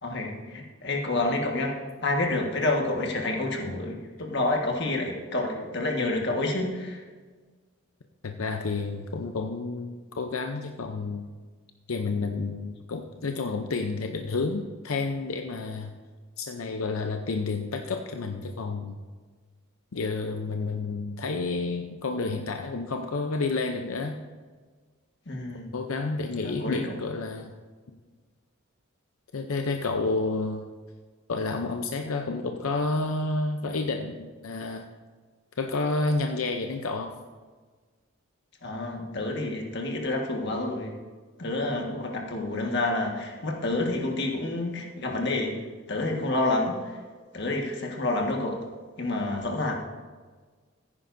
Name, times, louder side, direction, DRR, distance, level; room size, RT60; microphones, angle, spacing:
voice 1, 0.0-7.0 25.2-25.7 26.4-27.0 38.6-40.9 41.4-45.6 45.9-47.0 47.3-48.6 49.0-49.8, left 2 dB, 55° left, 0 dB, 1.6 m, -28 dB
voice 2, 8.2-11.3 11.9-15.9 16.4-19.0 19.9-24.2 25.7-27.5 29.3-30.7 31.3-34.9 35.6-37.2, left 3 dB, 90° left, 4 dB, 0.6 m, -30 dB
15.0 x 9.8 x 2.7 m, 1.4 s
head